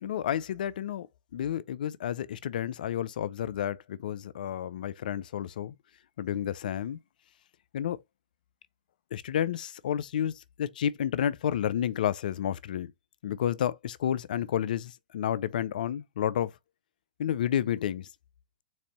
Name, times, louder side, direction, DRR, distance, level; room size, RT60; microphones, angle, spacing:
voice 1, 0.0-1.1 1.3-5.7 6.2-7.0 7.7-8.0 9.1-12.9 13.2-16.5 17.2-18.1, left 10 dB, 70° left, 0.4 m, -30 dB
4.1 x 2.6 x 3.0 m
hypercardioid pair, 125°, 5 cm